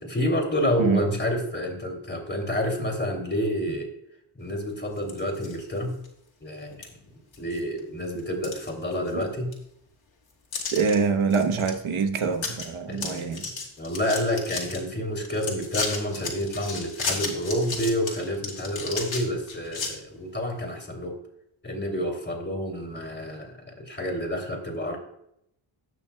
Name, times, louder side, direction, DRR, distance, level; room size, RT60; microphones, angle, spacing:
voice 1, 0.0-3.9 4.3-6.0 6.4-6.9 7.4-9.5 12.9-13.4 13.8-21.2 21.6-25.0, equal, 20° left, 2 dB, 2.7 m, -29 dB
sound 1, 5.0-5.6 6.0-6.1 6.8-6.9 7.3-7.8 8.2-9.2 9.5-9.6 10.5-10.9 11.3-11.7 12.0-12.1 12.3-12.7 12.9-14.8 15.2-19.9, left 4 dB, 65° left, 2.2 m, -33 dB
voice 2, 10.7-13.4, right 5 dB, 70° right, 6 dB, 1.1 m, -25 dB
18.0 x 6.1 x 2.3 m, 0.75 s
cardioid pair, 75°, 50 cm